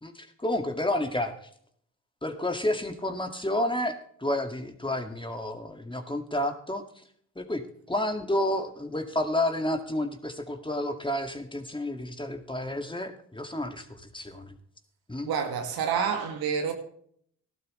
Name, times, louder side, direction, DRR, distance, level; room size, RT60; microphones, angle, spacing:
voice 1, 0.0-1.3 2.2-6.8 7.4-14.6 15.1-15.3, left 1 dB, 15° left, 5 dB, 2.1 m, -30 dB
voice 2, 15.2-16.7, right 7 dB, 85° right, 4 dB, 2.1 m, -28 dB
14.5 x 12.0 x 3.2 m, 0.62 s
supercardioid pair, 50°, 36 cm